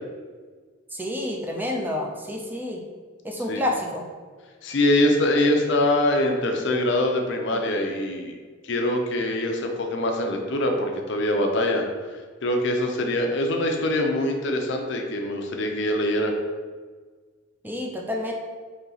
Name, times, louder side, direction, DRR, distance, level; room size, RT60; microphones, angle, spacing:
voice 1, 0.9-2.8 3.2-4.1 17.6-18.3, left 1 dB, 10° right, 0 dB, 0.4 m, -29 dB
voice 2, 4.6-8.3 8.6-11.8 12.4-16.3, left 1 dB, 60° left, 3 dB, 0.6 m, -23 dB
4.2 x 2.8 x 3.9 m, 1.5 s
head